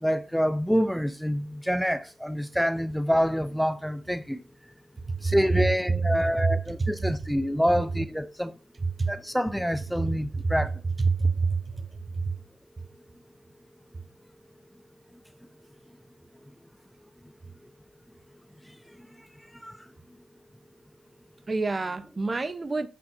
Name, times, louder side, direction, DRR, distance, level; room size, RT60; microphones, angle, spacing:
voice 1, 0.0-4.4 5.2-8.6 9.1-10.7 18.6-18.8 19.2-19.9, equal, ahead, 0.5 m, -27 dB
voice 2, 11.1-11.6 12.2-12.3 21.5-22.9, right 4 dB, 30° right, 0.9 m, -26 dB
13.0 x 5.6 x 2.8 m
supercardioid pair, 60°, 0 cm